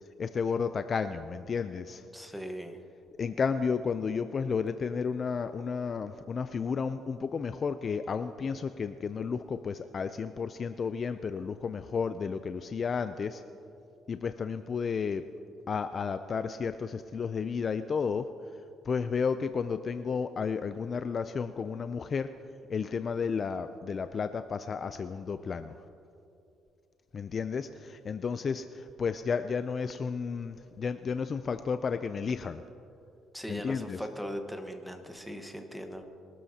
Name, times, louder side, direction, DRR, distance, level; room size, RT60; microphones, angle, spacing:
voice 1, 0.2-2.1 3.2-13.4 14.1-15.3 15.7-18.3 18.8-22.3 22.7-25.8 27.1-32.6 33.5-34.0, left 5 dB, 40° left, 10 dB, 0.4 m, -32 dB
voice 2, 2.1-2.8 33.3-36.0, equal, ahead, 5 dB, 1.2 m, -39 dB
22.5 x 13.0 x 2.8 m, 2.7 s
cardioid pair, 110°, 0 cm